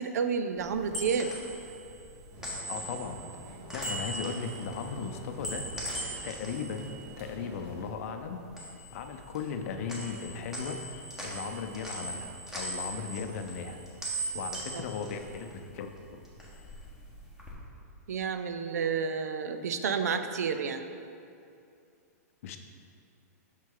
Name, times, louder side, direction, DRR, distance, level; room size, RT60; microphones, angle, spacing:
voice 1, 0.0-1.3 14.7-14.8 18.1-20.8, right 6 dB, 80° right, 9 dB, 0.5 m, -30 dB
sound 1, 0.6-7.9 8.2-9.6 9.9-15.9 16.2-17.5, right 1 dB, 5° right, 1.3 m, -40 dB
sound 2, 2.3-7.8, equal, 35° right, 1.6 m, -48 dB
voice 2, 2.7-5.7 6.2-6.9 7.2-8.4 8.9-10.8 11.2-13.8 14.3-15.9 22.4-22.6, left 6 dB, 60° left, 6 dB, 0.6 m, -37 dB
6.1 x 5.7 x 3.8 m, 2.5 s
hypercardioid pair, 135°, 9 cm